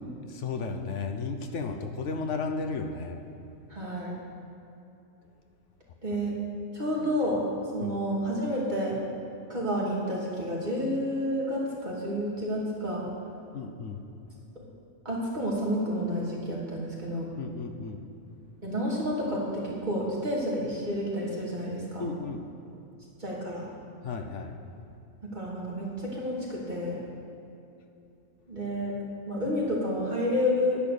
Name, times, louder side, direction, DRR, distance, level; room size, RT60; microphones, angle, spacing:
voice 1, 0.0-3.2 7.8-7.9 13.5-14.0 17.4-18.0 22.0-22.4 24.0-24.6, left 4 dB, 60° left, 5 dB, 1.1 m, -34 dB
voice 2, 3.7-4.1 6.0-6.3 6.7-7.4 7.7-9.0 9.5-13.0 14.5-14.6 15.0-17.3 18.6-22.1 23.2-23.6 25.2-27.0 28.5-28.9 29.3-30.8, equal, 30° right, -5 dB, 2.8 m, -30 dB
10.0 x 9.4 x 6.8 m, 2.8 s
omnidirectional pair, 1.5 m